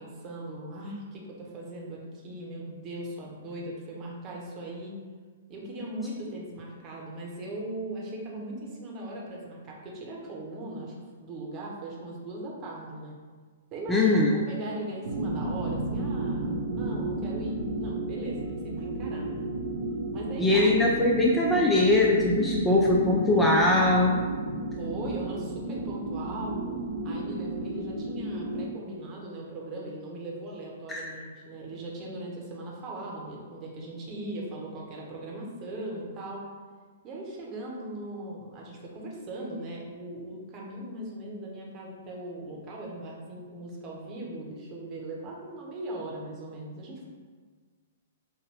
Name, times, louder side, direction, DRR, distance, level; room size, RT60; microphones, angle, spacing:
voice 1, 0.0-4.9 5.5-13.1 13.7-19.4 20.1-20.7 23.3-24.0 24.8-26.6 27.0-36.4 37.0-47.1, right 1 dB, 30° right, -3 dB, 0.9 m, -39 dB
voice 2, 13.9-14.3 20.4-24.1 30.9-31.0, left 2 dB, 10° left, -3 dB, 0.4 m, -21 dB
sound 1, 15.0-28.7, right 2 dB, 60° right, 0.6 m, -33 dB
5.3 x 2.2 x 3.3 m, 1.5 s
figure-of-eight pair, 115°, 0 cm